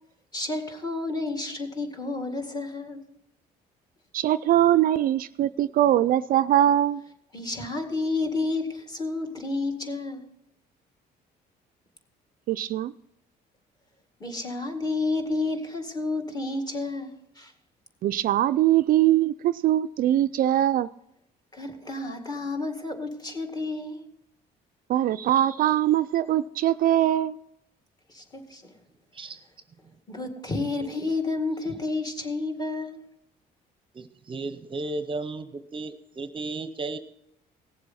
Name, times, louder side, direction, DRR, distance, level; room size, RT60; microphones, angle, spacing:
voice 1, 0.3-3.0 7.3-10.3 14.2-17.5 21.5-24.1 28.1-28.6 30.1-33.0, left 3 dB, 25° left, 2.0 m, -30 dB
voice 2, 4.1-7.0 12.5-12.9 18.0-20.9 24.9-27.4, right 12 dB, 60° right, 0.4 m, -22 dB
voice 3, 33.9-37.0, right 3 dB, 30° right, 0.7 m, -34 dB
17.5 x 7.5 x 4.2 m
cardioid pair, 110°, 17 cm